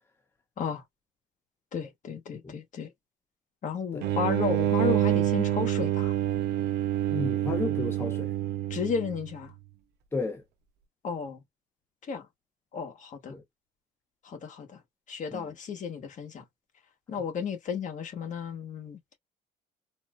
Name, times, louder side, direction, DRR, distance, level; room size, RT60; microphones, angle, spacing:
voice 1, 1.7-2.9 3.6-6.1 8.7-9.5 11.0-11.4 12.1-12.2 12.7-13.3 14.2-14.8 15.1-16.4 17.1-19.0, left 6 dB, 50° left, 1.2 m, -33 dB
sound 1, 4.0-9.4, right 12 dB, 75° right, 0.6 m, -27 dB
voice 2, 7.1-8.3 10.1-10.4 13.3-13.4 15.3-15.5 17.1-17.2, left 3 dB, 15° left, 0.7 m, -33 dB
4.2 x 2.0 x 2.4 m
cardioid pair, 110°, 17 cm